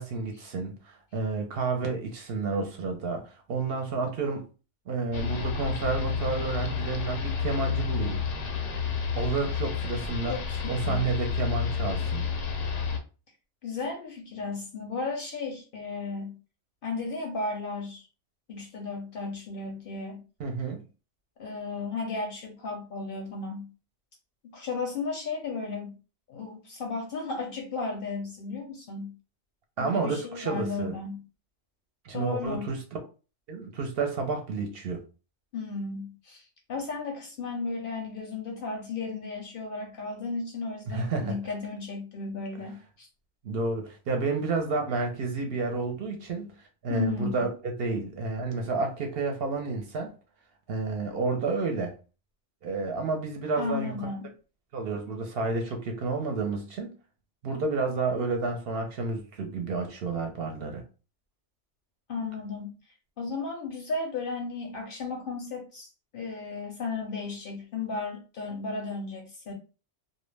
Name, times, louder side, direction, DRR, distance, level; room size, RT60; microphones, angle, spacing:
voice 1, 0.0-4.4 4.9-8.2 9.1-10.4 10.7-12.3 20.4-20.8 29.8-30.9 32.0-32.8 33.5-35.0 40.9-41.3 43.4-46.5 46.8-50.1 50.7-51.9 52.6-53.9 54.7-56.9 57.4-60.8, right 3 dB, 60° right, 0.7 m, -30 dB
sound 1, 5.1-13.0, left 6 dB, 90° left, 0.9 m, -30 dB
voice 2, 10.3-11.1 13.6-16.4 16.8-18.0 18.5-20.2 21.4-23.7 24.5-26.0 26.3-29.2 29.8-31.2 32.1-32.6 35.5-43.1 46.9-47.5 53.6-54.3 62.1-62.7 63.2-69.5, left 4 dB, 60° left, 0.6 m, -34 dB
2.2 x 2.0 x 3.1 m
omnidirectional pair, 1.2 m